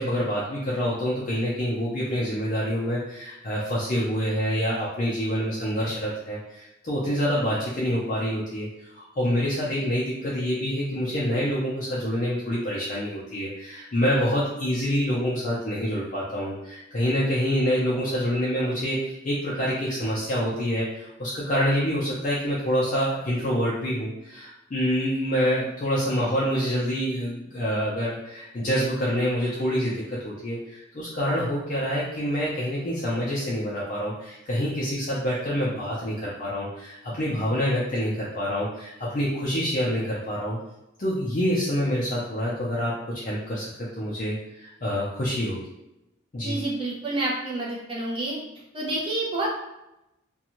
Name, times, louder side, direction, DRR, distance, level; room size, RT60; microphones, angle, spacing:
voice 1, 0.0-8.7 8.9-40.6 41.0-45.6 46.3-46.6, equal, 40° left, -7 dB, 0.4 m, -27 dB
voice 2, 46.4-48.4 48.7-49.6, right 2 dB, 25° right, -5 dB, 0.6 m, -28 dB
2.5 x 2.2 x 2.9 m, 0.90 s
head